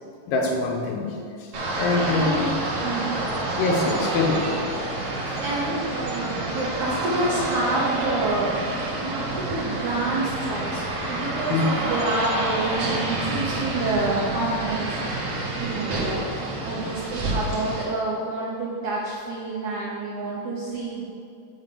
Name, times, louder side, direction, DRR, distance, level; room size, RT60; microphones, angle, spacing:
voice 1, 0.3-1.5 1.8-2.5 3.6-4.6 5.3-5.4 11.5-11.7 16.7-16.9, left 3 dB, 90° left, 2 dB, 3.0 m, -24 dB
sound 1, 1.5-17.8, right 2 dB, 55° right, 1.8 m, -28 dB
voice 2, 2.0-3.1 5.4-21.0, right 2 dB, 75° right, -5 dB, 1.8 m, -28 dB
9.4 x 3.9 x 6.8 m, 2.5 s
omnidirectional pair, 4.7 m